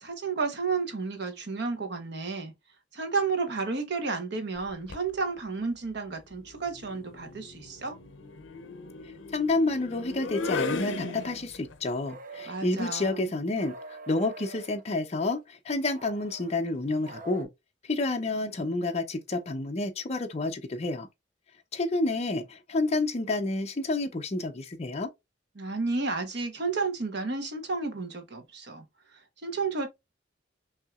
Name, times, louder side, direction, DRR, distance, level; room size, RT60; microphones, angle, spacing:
voice 1, 0.0-2.5 2.9-8.0 12.5-13.3 25.6-28.8 29.4-29.9, right 4 dB, 60° right, 1.1 m, -31 dB
sound 1, 4.6-5.1 6.5-11.7, left 4 dB, 85° left, 0.6 m, -37 dB
voice 2, 9.3-17.5 17.9-21.1 21.7-25.1, left 2 dB, 35° left, 0.6 m, -29 dB
sound 2, 10.4-11.4 12.0-12.9 13.5-14.8 15.9-17.4, right 3 dB, 45° right, 0.7 m, -45 dB
5.7 x 2.8 x 2.4 m
head